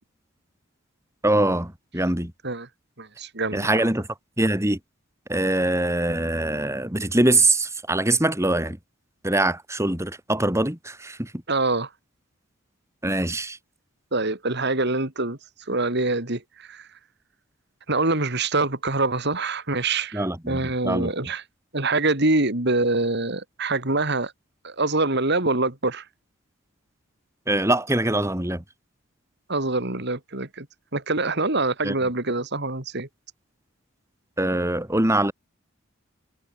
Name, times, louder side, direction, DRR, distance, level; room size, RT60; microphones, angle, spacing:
voice 1, 1.2-2.3 3.5-4.1 4.4-4.8 5.3-8.8 9.2-11.3 13.0-13.6 20.1-21.1 27.5-28.6 31.8-31.9 34.4-35.3, right 1 dB, 15° right, 2.8 m, -23 dB
voice 2, 3.0-3.9 11.5-11.9 14.1-15.4 15.7-16.9 17.9-21.4 21.7-24.3 24.6-26.0 29.5-30.7 30.9-33.1, right 2 dB, 50° right, 3.1 m, -25 dB
head